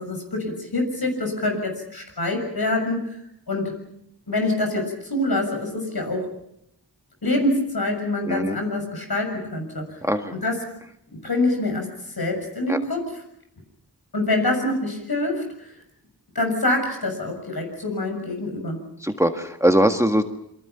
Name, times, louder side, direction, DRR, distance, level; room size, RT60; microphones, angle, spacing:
voice 1, 0.0-3.2 3.5-3.7 4.3-6.3 7.2-10.0 10.3-10.6 11.1-13.1 14.1-15.7 16.4-18.8, left 2 dB, 65° left, 4 dB, 6.9 m, -25 dB
voice 2, 8.3-8.6 10.0-10.3 12.7-12.8 19.0-20.2, equal, 5° right, 6 dB, 1.6 m, -21 dB
27.5 x 23.5 x 5.8 m, 0.74 s
wide cardioid pair, 45°, 40 cm